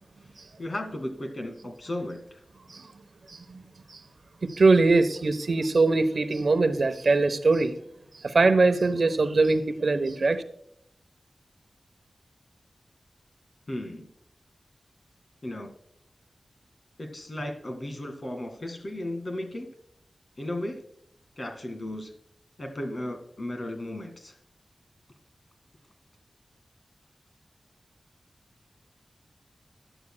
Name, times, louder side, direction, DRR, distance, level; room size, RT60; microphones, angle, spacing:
voice 1, 0.6-2.4 13.7-14.1 15.4-15.7 17.0-19.7 20.4-20.8 21.4-22.1 22.6-24.4, left 1 dB, 45° left, 6 dB, 1.9 m, -35 dB
voice 2, 3.3-3.6 4.4-7.7 8.2-10.4, right 3 dB, 65° right, 10 dB, 0.8 m, -22 dB
16.0 x 11.0 x 2.2 m, 0.74 s
wide cardioid pair, 85°, 0 cm